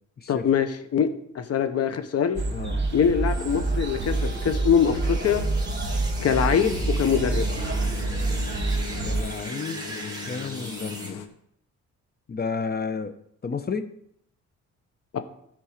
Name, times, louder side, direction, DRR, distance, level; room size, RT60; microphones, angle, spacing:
voice 1, 0.3-1.1 1.3-2.4 2.9-5.5 6.2-7.5 15.1-15.2, left 7 dB, 55° left, 9 dB, 1.2 m, -23 dB
sound 1, 2.4-9.2, right 3 dB, 35° right, 2.0 m, -27 dB
voice 2, 2.5-2.8 9.0-11.2 12.3-13.1 13.4-13.9, left 5 dB, 30° left, 11 dB, 0.9 m, -32 dB
sound 2, 3.2-11.1, right 2 dB, 15° right, 2.1 m, -40 dB
sound 3, 6.2-11.3, left 7 dB, 80° left, 1.0 m, -38 dB
12.5 x 5.5 x 5.1 m, 0.71 s
cardioid pair, 90°, 30 cm